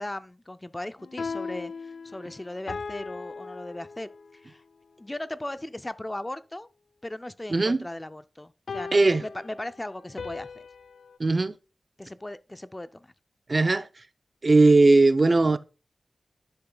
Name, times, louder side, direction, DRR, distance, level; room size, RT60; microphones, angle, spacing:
voice 1, 0.0-4.6 5.0-6.7 7.0-10.7 12.0-13.1, left 1 dB, 20° left, 0.4 m, -38 dB
sound 1, 1.0-4.4 8.7-11.2, left 4 dB, 90° left, 0.4 m, -38 dB
voice 2, 7.5-7.9 8.9-9.2 11.2-11.6 13.5-13.9 14.4-15.6, right 3 dB, 40° right, 0.4 m, -19 dB
11.0 x 6.8 x 2.2 m
wide cardioid pair, 95°, 0 cm